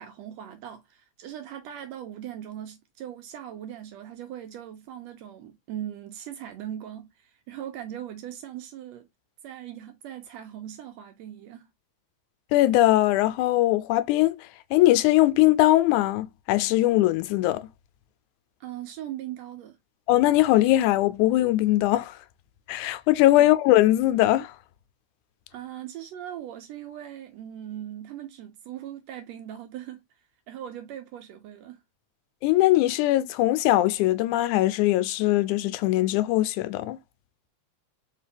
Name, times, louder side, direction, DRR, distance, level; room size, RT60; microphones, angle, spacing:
voice 1, 0.0-9.1 9.4-11.7 18.6-19.8 23.4-23.5 25.5-30.0 30.5-31.8, right 11 dB, 80° right, 1.6 m, -39 dB
voice 2, 12.5-17.7 20.1-22.2 22.7-24.5 32.4-37.0, left 16 dB, 85° left, 2.0 m, -21 dB
4.7 x 2.9 x 3.3 m
omnidirectional pair, 3.4 m